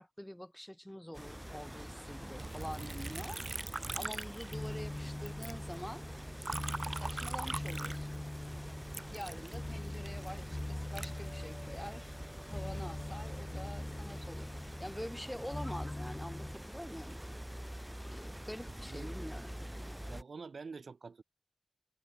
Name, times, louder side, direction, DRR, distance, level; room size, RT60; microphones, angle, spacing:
voice 1, 0.0-3.4 3.9-6.1 6.8-8.2 9.1-12.1 12.5-17.2 18.1-19.5, equal, 10° left, 5.2 m, -46 dB
sound 1, 1.1-20.2, equal, 10° right, 5.6 m, -46 dB
Liquid, 2.4-5.0 5.3-8.5 8.9-11.9 12.5-13.0, right 3 dB, 50° right, 4.8 m, -42 dB
sound 2, 4.5-16.5, left 1 dB, 30° left, 3.8 m, -42 dB
voice 2, 20.1-21.2, right 4 dB, 90° right, 6.5 m, -46 dB
wide cardioid pair, 50°, 0 cm